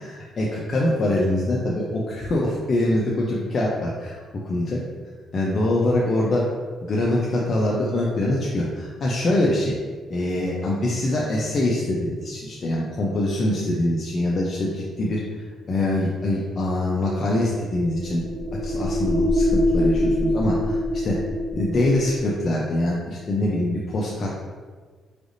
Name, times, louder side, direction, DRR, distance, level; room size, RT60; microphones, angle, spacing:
voice 1, 0.0-4.2 4.4-4.8 5.3-6.4 6.8-9.7 10.1-18.2 18.6-20.8 21.0-21.2 21.5-24.5, left 1 dB, 45° left, -4 dB, 0.6 m, -24 dB
sound 1, 17.6-22.3, left 1 dB, 55° right, 0.4 m, -24 dB
4.9 x 3.3 x 2.6 m, 1.5 s
cardioid pair, 90°, 0 cm